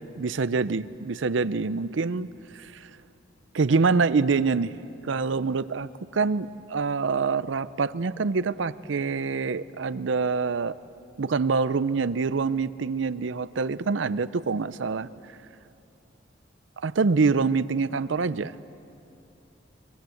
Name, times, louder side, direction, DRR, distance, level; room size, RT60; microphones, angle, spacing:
voice 1, 0.2-2.3 2.5-2.9 3.5-4.7 5.0-10.7 11.2-15.1 16.8-18.6, right 4 dB, 80° right, 16 dB, 0.6 m, -25 dB
23.5 x 22.5 x 7.9 m, 2.9 s
head